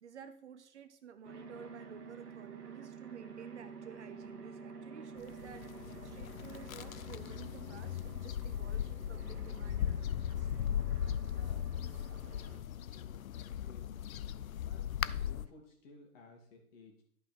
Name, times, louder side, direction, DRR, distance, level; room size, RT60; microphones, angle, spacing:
voice 1, 0.0-10.8, right 7 dB, 50° right, 10 dB, 0.8 m, -53 dB
sound 1, 1.2-12.6, right 4 dB, 85° right, 1.5 m, -50 dB
sound 2, 5.2-15.5, left 10 dB, 65° left, 0.5 m, -38 dB
voice 2, 11.3-17.0, left 3 dB, 40° left, 1 dB, 2.8 m, -59 dB
11.0 x 5.4 x 4.6 m, 0.66 s
hypercardioid pair, 140°, 46 cm